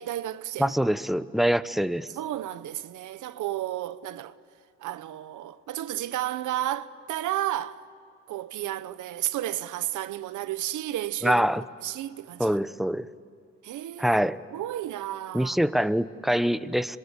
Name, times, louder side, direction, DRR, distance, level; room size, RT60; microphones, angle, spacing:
voice 1, 0.0-0.7 2.1-4.4 4.8-7.8 8.3-12.6 13.6-14.2 14.5-15.6, right 13 dB, 80° right, 1.0 m, -32 dB
voice 2, 0.6-2.1 11.2-11.6 12.4-13.1 14.0-14.4 15.3-17.0, equal, ahead, 0.9 m, -24 dB
26.0 x 23.0 x 10.0 m
cardioid pair, 90°, 30 cm